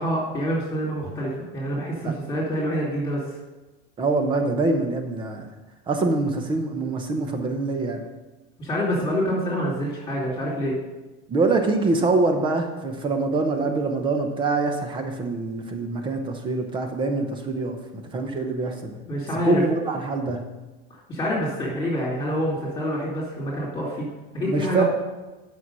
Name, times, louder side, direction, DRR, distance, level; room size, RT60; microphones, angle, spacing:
voice 1, 0.0-3.4 8.6-10.8 19.1-19.6 21.1-24.1 24.3-24.8, equal, 15° left, -8 dB, 2.7 m, -26 dB
voice 2, 4.0-5.5 5.9-8.0 11.3-19.0 19.4-20.4 24.4-24.8, right 3 dB, 15° right, 5 dB, 0.8 m, -24 dB
9.1 x 6.2 x 5.4 m, 1.1 s
supercardioid pair, 170°, 30 cm